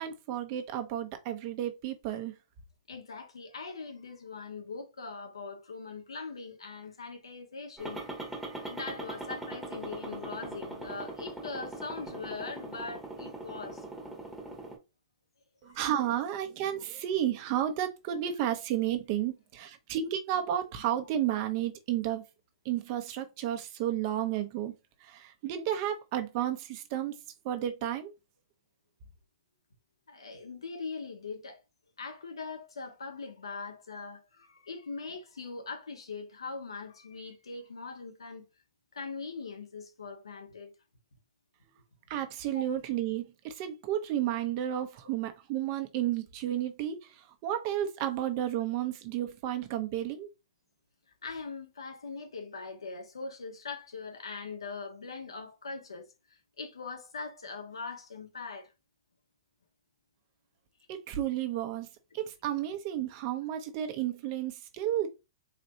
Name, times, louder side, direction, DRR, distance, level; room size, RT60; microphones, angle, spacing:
voice 1, 0.0-2.3 15.6-22.2 22.6-24.7 25.0-27.2 27.4-28.1 42.1-50.3 60.9-61.9 62.1-65.1, right 11 dB, 45° right, 0.8 m, -32 dB
voice 2, 2.9-13.9 15.7-15.8 30.1-31.6 32.0-38.4 38.9-40.7 42.5-42.6 51.2-56.1 56.6-58.7, left 4 dB, 85° left, 1.1 m, -41 dB
sound 1, 7.8-14.8, right 2 dB, 5° right, 1.1 m, -41 dB
4.1 x 3.0 x 2.7 m
hypercardioid pair, 125°, 3 cm